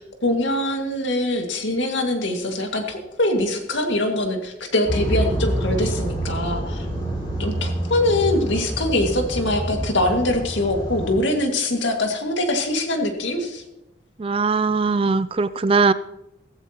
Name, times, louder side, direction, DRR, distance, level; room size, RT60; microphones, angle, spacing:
voice 1, 0.0-6.9 7.4-13.6, left 1 dB, 75° left, 3 dB, 2.1 m, -23 dB
sound 1, 4.9-11.1, right 1 dB, 25° left, 3.5 m, -27 dB
voice 2, 14.2-15.9, right 4 dB, 30° right, 15 dB, 0.3 m, -20 dB
16.0 x 14.5 x 3.0 m, 0.91 s
head